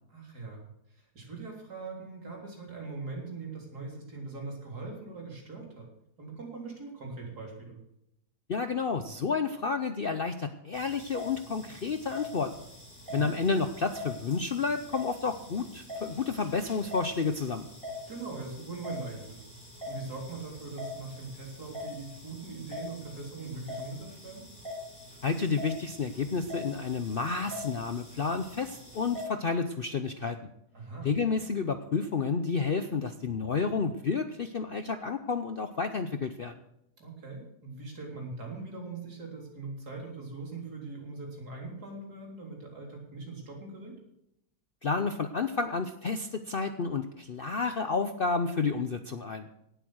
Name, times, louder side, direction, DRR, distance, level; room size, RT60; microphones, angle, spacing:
voice 1, 0.1-0.6 0.9-5.9 6.2-7.8 13.1-13.3 18.1-19.5 19.9-24.5 30.7-31.1 37.0-44.0, right 3 dB, 70° right, 0 dB, 4.1 m, -41 dB
voice 2, 8.5-12.5 13.1-17.7 25.2-30.4 31.0-36.5 44.8-49.5, left 4 dB, 50° left, 9 dB, 0.7 m, -30 dB
sound 1, 10.7-29.3, left 2 dB, 5° left, 3.7 m, -44 dB
17.5 x 8.3 x 6.3 m, 0.81 s
omnidirectional pair, 1.7 m